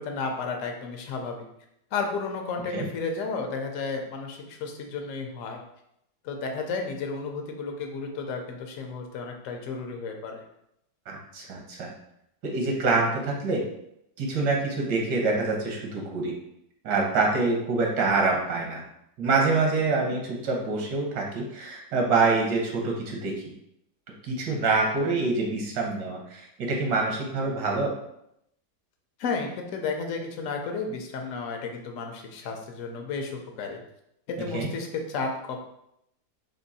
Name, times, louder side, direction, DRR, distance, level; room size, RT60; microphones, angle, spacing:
voice 1, 0.0-1.5 1.9-5.6 6.2-10.4 29.2-33.8 34.3-35.6, left 4 dB, 65° left, 3 dB, 0.9 m, -32 dB
voice 2, 11.1-11.9 12.4-13.6 14.2-16.3 16.8-18.8 19.2-23.3 24.3-28.0 34.5-34.7, right 3 dB, 85° right, -1 dB, 1.5 m, -26 dB
3.7 x 2.6 x 4.0 m, 0.78 s
omnidirectional pair, 1.8 m